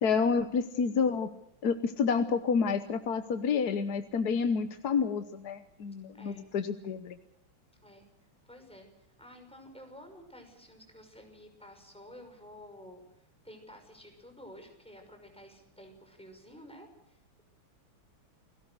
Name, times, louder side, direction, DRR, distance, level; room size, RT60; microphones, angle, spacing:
voice 1, 0.0-1.3 1.6-7.2, left 5 dB, 55° left, 9 dB, 1.4 m, -29 dB
voice 2, 6.1-6.5 7.8-8.9 9.2-17.4, equal, ahead, 4 dB, 5.9 m, -52 dB
29.0 x 18.5 x 6.4 m, 0.83 s
omnidirectional pair, 2.3 m